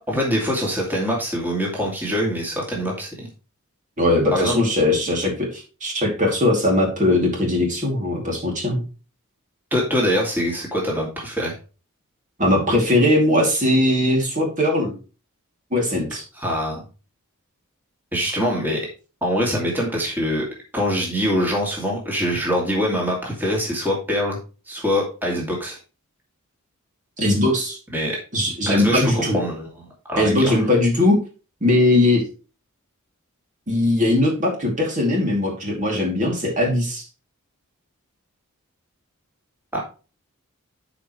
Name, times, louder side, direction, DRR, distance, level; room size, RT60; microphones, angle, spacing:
voice 1, 0.1-3.3 4.3-4.6 9.7-11.5 16.3-16.8 18.1-18.8 19.2-20.5 20.7-24.4 24.7-25.8 27.9-28.2 28.7-29.7 30.1-30.5 39.7-39.8, equal, 10° right, -3 dB, 2.5 m, -23 dB
voice 2, 4.0-8.8 12.4-14.9 15.7-16.2 27.2-27.8 28.3-29.4 30.2-31.2 31.6-32.2 33.7-37.0, left 1 dB, 35° right, 0 dB, 2.6 m, -20 dB
12.5 x 5.1 x 3.2 m, 0.33 s
head